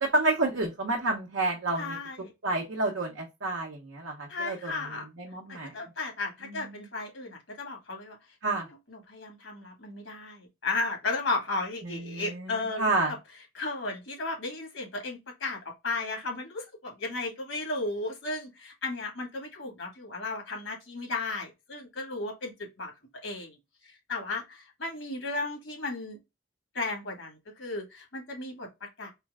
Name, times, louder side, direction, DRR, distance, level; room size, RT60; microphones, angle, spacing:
voice 1, 0.0-2.0 2.4-4.7 5.2-5.7 6.4-6.8 8.4-8.7 11.8-13.1, right 2 dB, 85° right, 0.9 m, -29 dB
voice 2, 1.8-2.3 4.3-5.1 5.5-8.2 8.9-12.9 13.6-22.9 23.2-23.6 23.8-26.2 26.7-29.1, left 3 dB, 75° left, 1.8 m, -35 dB
4.4 x 2.2 x 3.5 m
head